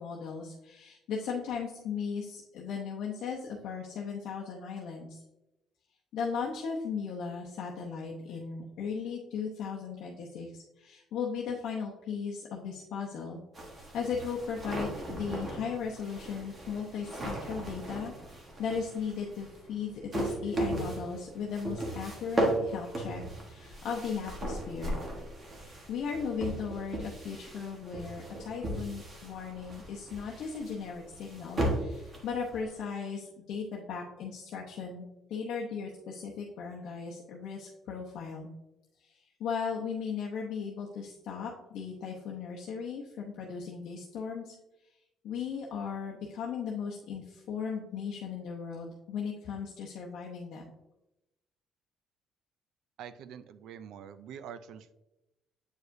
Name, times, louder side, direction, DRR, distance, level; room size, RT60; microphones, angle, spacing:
voice 1, 0.0-5.2 6.1-25.0 25.6-35.0 35.3-38.5 39.0-44.5 45.2-50.6, left 6 dB, 65° left, -2 dB, 0.8 m, -37 dB
sound 1, 13.5-32.8, right 1 dB, 25° right, 1.2 m, -37 dB
voice 2, 53.0-54.9, right 8 dB, 65° right, 13 dB, 0.4 m, -45 dB
8.0 x 4.8 x 2.6 m, 0.95 s
cardioid pair, 170°, 0 cm